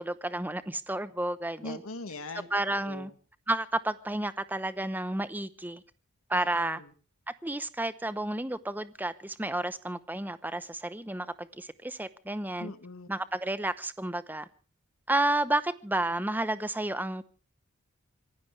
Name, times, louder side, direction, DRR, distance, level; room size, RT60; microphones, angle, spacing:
voice 1, 0.0-1.8 2.5-3.1 3.5-5.8 6.3-6.8 7.4-12.7 13.1-14.5 15.1-17.3, right 1 dB, 10° right, 0.8 m, -31 dB
voice 2, 1.6-2.5 2.8-3.1 6.3-6.8 12.6-13.1, left 2 dB, 70° left, 1.7 m, -41 dB
26.0 x 16.5 x 3.3 m
head